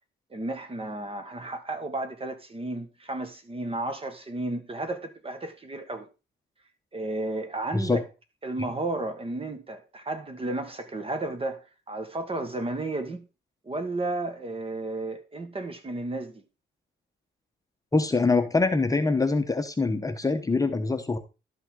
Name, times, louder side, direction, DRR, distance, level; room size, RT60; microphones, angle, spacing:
voice 1, 0.3-6.1 6.9-8.0 8.4-13.2 13.6-16.4, right 2 dB, 30° right, 1.6 m, -33 dB
voice 2, 17.9-21.2, left 3 dB, 15° left, 1.0 m, -24 dB
12.0 x 5.8 x 3.8 m
cardioid pair, 90°, 20 cm